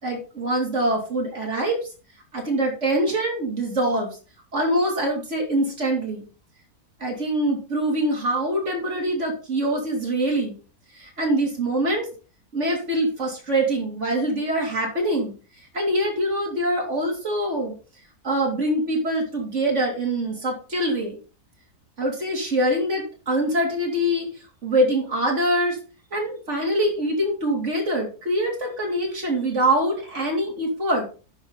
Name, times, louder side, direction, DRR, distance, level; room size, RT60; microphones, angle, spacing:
voice 1, 0.0-1.8 2.3-4.2 4.5-6.2 7.0-10.6 10.9-12.1 12.5-15.3 15.7-17.7 18.2-21.2 22.0-25.8 26.1-31.1, right 1 dB, 50° right, 0 dB, 3.6 m, -24 dB
10.0 x 6.7 x 4.1 m, 0.35 s
omnidirectional pair, 1.6 m